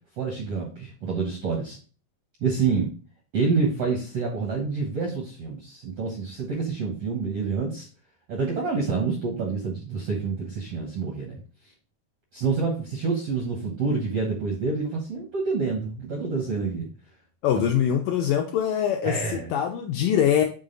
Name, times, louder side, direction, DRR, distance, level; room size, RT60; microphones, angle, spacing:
voice 1, 0.2-1.8 2.4-2.9 3.3-7.9 8.3-11.4 12.3-16.9 19.0-19.5, right 4 dB, 70° right, -1 dB, 1.4 m, -27 dB
voice 2, 17.4-20.4, left 9 dB, 85° left, 3 dB, 1.9 m, -23 dB
6.3 x 3.9 x 3.8 m, 0.39 s
omnidirectional pair, 4.4 m